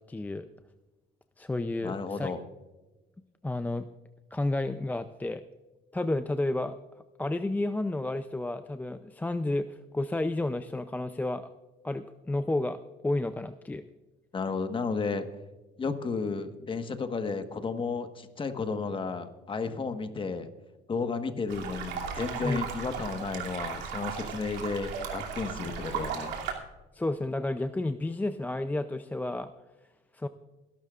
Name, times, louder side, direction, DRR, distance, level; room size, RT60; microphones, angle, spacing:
voice 1, 0.1-0.5 1.4-2.3 3.4-3.9 4.3-5.4 5.9-6.8 7.2-11.5 11.8-12.8 13.0-13.8 22.4-22.6 26.9-29.5 30.1-30.3, left 2 dB, 10° left, 10 dB, 0.5 m, -31 dB
voice 2, 1.8-2.4 14.3-15.3 15.8-20.5 20.9-26.4, left 4 dB, 30° left, 8 dB, 1.4 m, -33 dB
sound 1, 21.5-26.5, right 7 dB, 90° right, 2.7 m, -36 dB
23.0 x 12.0 x 2.5 m, 1.2 s
cardioid pair, 110°, 17 cm